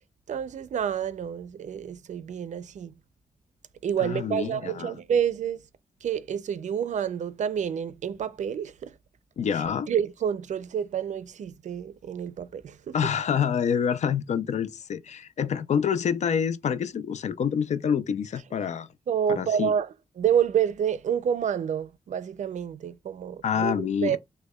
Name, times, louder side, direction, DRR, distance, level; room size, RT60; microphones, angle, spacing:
voice 1, 0.3-2.9 3.8-5.7 6.0-9.0 9.5-13.0 19.1-24.2, right 8 dB, 75° right, 0.4 m, -28 dB
voice 2, 4.0-4.9 9.4-9.9 12.9-18.9 19.3-19.7 23.4-24.2, left 7 dB, 65° left, 0.4 m, -27 dB
6.1 x 2.1 x 2.2 m
wide cardioid pair, 170°, 13 cm